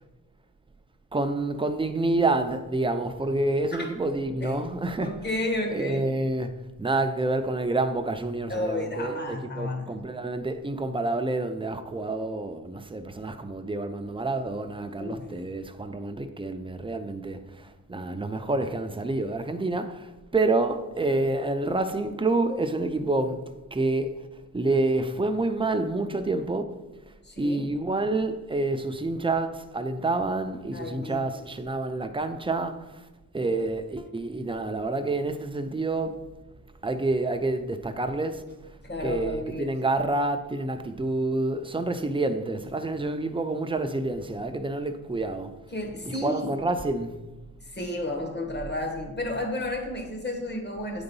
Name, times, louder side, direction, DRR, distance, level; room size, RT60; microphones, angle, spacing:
voice 1, 1.1-5.2 5.7-24.3 24.5-26.9 27.4-32.8 33.3-36.2 36.8-38.4 39.0-45.5 46.2-47.2, right 2 dB, 15° right, 0.5 m, -28 dB
voice 2, 5.0-6.1 8.5-10.0 15.0-15.3 27.2-27.6 30.7-31.4 38.8-39.7 45.7-46.5 47.7-51.0, left 1 dB, 30° left, 1.4 m, -32 dB
8.8 x 4.0 x 5.4 m
wide cardioid pair, 105°, 33 cm